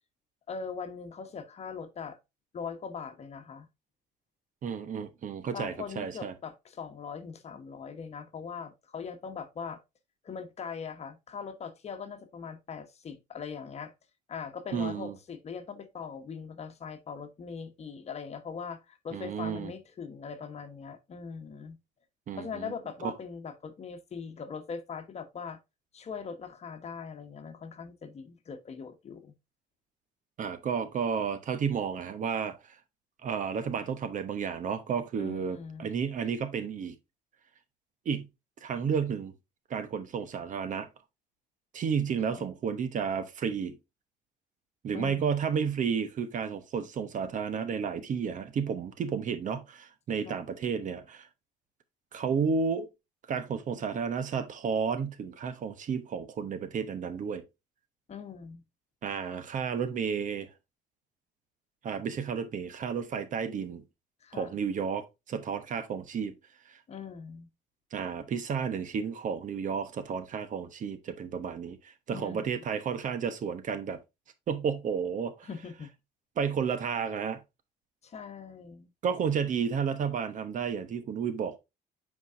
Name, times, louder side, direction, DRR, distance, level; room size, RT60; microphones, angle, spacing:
voice 1, 0.5-2.2 2.5-3.7 5.5-9.8 10.2-13.9 14.3-21.8 22.4-25.6 25.9-29.3 35.2-35.9 42.3-42.4 44.9-45.3 50.2-50.4 58.1-58.6 64.2-64.6 66.9-67.5 72.1-72.4 75.4-75.9 78.0-78.9, left 6 dB, 40° left, 1.2 m, -41 dB
voice 2, 4.6-6.3 14.7-15.1 19.1-19.7 22.3-22.7 23.0-23.1 30.4-32.8 33.2-37.0 38.0-38.3 38.6-39.3 39.7-40.9 41.7-43.8 44.8-51.3 52.1-52.9 53.3-57.4 59.0-60.5 61.8-63.8 64.3-66.3 66.7-66.8 67.9-74.0 74.5-75.5 76.4-77.4 79.0-81.6, right 6 dB, 50° right, 1.0 m, -32 dB
8.1 x 4.7 x 2.6 m
cardioid pair, 110°, 17 cm